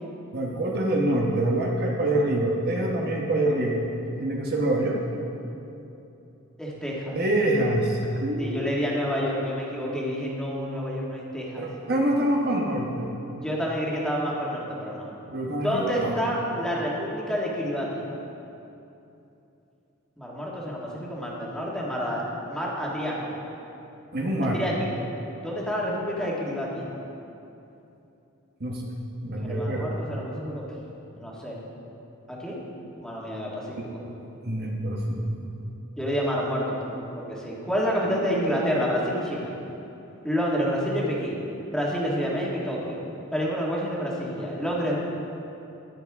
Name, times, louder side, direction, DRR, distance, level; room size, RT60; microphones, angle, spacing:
voice 1, 0.3-3.9 4.2-5.0 7.1-8.7 11.6-13.1 15.3-16.1 24.1-24.6 28.6-28.8 29.2-29.9 33.8-33.9 34.4-35.5, right 1 dB, 50° right, -1 dB, 1.2 m, -25 dB
voice 2, 6.6-7.2 8.4-11.7 13.4-15.1 15.5-18.0 20.2-23.4 24.4-25.1 25.4-26.9 29.4-30.6 31.1-31.6 32.3-32.6 33.0-34.0 36.0-39.5 40.2-41.4 41.7-43.0 43.3-45.0, equal, 5° left, -5 dB, 1.8 m, -29 dB
13.5 x 10.5 x 3.6 m, 2.9 s
head